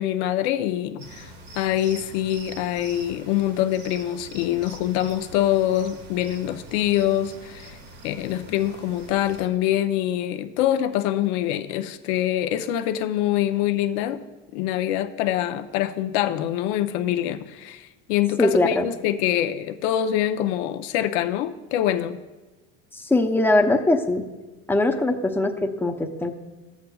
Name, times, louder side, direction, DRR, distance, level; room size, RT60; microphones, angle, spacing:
voice 1, 0.0-7.8 8.0-14.2 14.5-22.2, left 12 dB, 75° left, 0.7 m, -25 dB
sound 1, 1.0-9.5, right 2 dB, 90° right, 1.9 m, -44 dB
voice 2, 18.4-18.8 22.9-24.3 24.7-26.3, left 2 dB, 5° left, 0.7 m, -21 dB
13.5 x 8.2 x 2.3 m
supercardioid pair, 100°, 33 cm